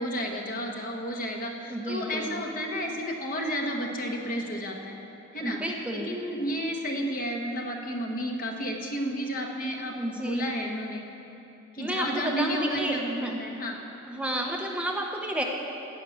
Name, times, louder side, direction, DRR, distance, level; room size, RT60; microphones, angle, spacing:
voice 1, 0.0-5.0 5.3-5.6 6.1-11.0 11.7-13.1 13.4-13.8, equal, 45° left, 1 dB, 1.3 m, -31 dB
voice 2, 1.7-2.5 5.4-6.2 9.9-10.6 11.8-13.4 14.1-15.4, right 1 dB, 5° right, 0 dB, 0.8 m, -31 dB
15.0 x 5.8 x 9.2 m, 3.0 s
head